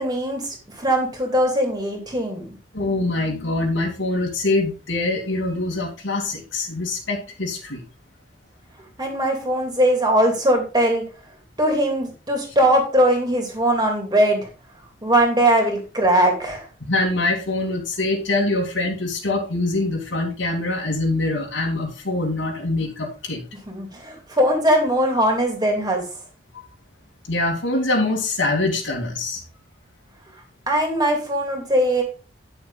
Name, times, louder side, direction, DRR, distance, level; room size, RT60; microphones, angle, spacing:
voice 1, 0.0-2.5 9.0-11.0 11.6-14.5 15.0-16.6 23.7-26.0 30.7-32.0, right 1 dB, 20° right, 2 dB, 2.8 m, -20 dB
voice 2, 2.7-7.8 16.8-23.4 26.5-26.7 27.3-29.4, left 2 dB, 85° left, -1 dB, 2.6 m, -24 dB
10.5 x 6.8 x 4.1 m, 0.34 s
head